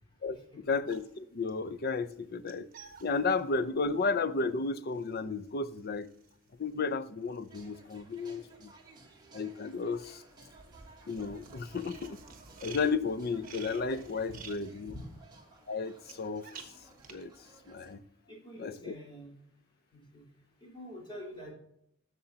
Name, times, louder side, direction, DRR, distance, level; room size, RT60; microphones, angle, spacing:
voice 1, 0.2-2.7 3.0-6.1 6.6-8.7 9.3-10.2 11.1-12.2 12.6-14.9 15.7-16.5 17.1-17.3 17.7-18.0 18.6-18.9, left 4 dB, 50° left, 0.5 m, -33 dB
sound 1, 0.9-8.4 8.6-17.1, right 6 dB, 45° right, 1.3 m, -53 dB
sound 2, 7.5-17.9, right 3 dB, 20° right, 1.5 m, -57 dB
voice 2, 18.3-19.3 19.9-20.3 20.6-21.5, equal, 25° left, 3.7 m, -47 dB
12.5 x 6.9 x 2.8 m
head